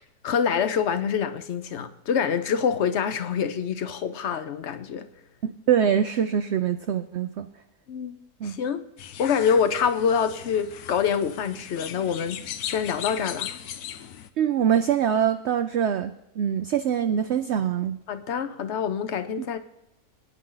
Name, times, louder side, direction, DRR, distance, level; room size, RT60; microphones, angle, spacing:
voice 1, 0.2-5.1 7.9-8.2 8.4-8.8 9.2-12.4 12.6-13.5 18.1-19.6, left 7 dB, 55° left, 0.9 m, -26 dB
voice 2, 5.4-7.5 8.4-8.6 14.4-18.0 19.4-19.5, right 8 dB, 65° right, 0.7 m, -24 dB
sound 1, 9.0-14.3, left 10 dB, 80° left, 1.2 m, -38 dB
26.0 x 9.4 x 3.9 m
omnidirectional pair, 1.7 m